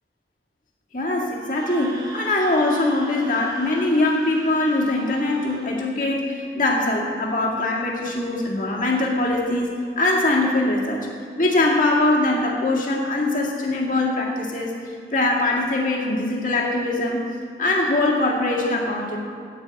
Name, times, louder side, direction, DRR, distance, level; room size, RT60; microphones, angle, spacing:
voice 1, 0.9-11.1 11.4-14.8 15.1-17.2 17.6-19.2, left 2 dB, 45° left, -2 dB, 2.0 m, -22 dB
Screaming, 1.4-5.8, right 1 dB, 20° right, 1.5 m, -40 dB
9.9 x 8.7 x 8.7 m, 2.2 s
head